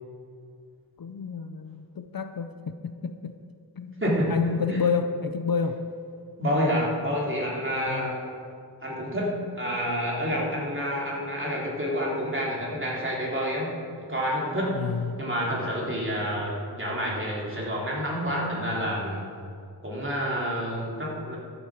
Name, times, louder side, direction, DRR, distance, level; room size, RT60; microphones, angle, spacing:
voice 1, 1.0-3.3 3.8-4.0 4.3-5.8 7.9-8.1 14.7-15.2, left 5 dB, 55° left, 9 dB, 0.7 m, -29 dB
voice 2, 4.0-4.8 6.4-8.2 8.8-13.7 14.0-14.8 15.2-19.2 19.8-21.4, equal, 30° right, -5 dB, 3.4 m, -28 dB
14.0 x 11.0 x 5.0 m, 2.3 s
wide cardioid pair, 100°, 41 cm